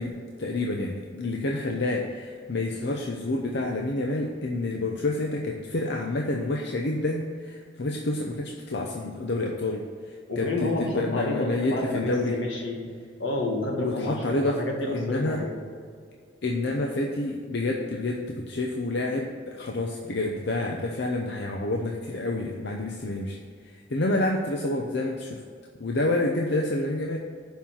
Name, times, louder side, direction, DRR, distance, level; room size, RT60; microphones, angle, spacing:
voice 1, 0.0-12.4 13.8-14.6 14.9-15.4 16.4-23.4 23.6-25.4 25.8-27.2, left 2 dB, 65° left, 1 dB, 0.7 m, -28 dB
voice 2, 10.3-12.9 13.2-15.6, left 2 dB, 85° left, 1 dB, 1.8 m, -29 dB
7.2 x 5.6 x 7.3 m, 2.1 s
head